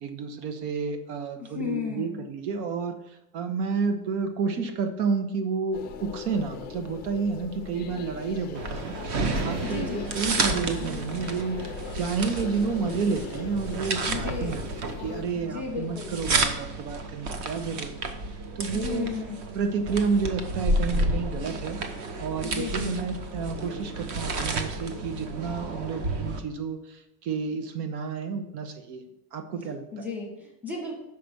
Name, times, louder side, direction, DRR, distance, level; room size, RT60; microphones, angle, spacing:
voice 1, 0.0-3.0 3.3-18.1 18.6-19.1 19.5-21.8 22.2-29.0 29.3-30.1, right 5 dB, 75° right, 7 dB, 1.1 m, -30 dB
voice 2, 1.4-2.3 9.6-10.1 14.1-14.6 15.4-16.2 18.7-19.5 22.4-23.0 29.9-31.0, left 5 dB, 5° right, -1 dB, 1.1 m, -34 dB
sound 1, 5.7-15.2, left 7 dB, 20° left, 0.4 m, -40 dB
sound 2, 8.5-26.4, right 2 dB, 35° right, 0.8 m, -31 dB
5.9 x 4.9 x 6.6 m, 0.85 s
cardioid pair, 170°, 50 cm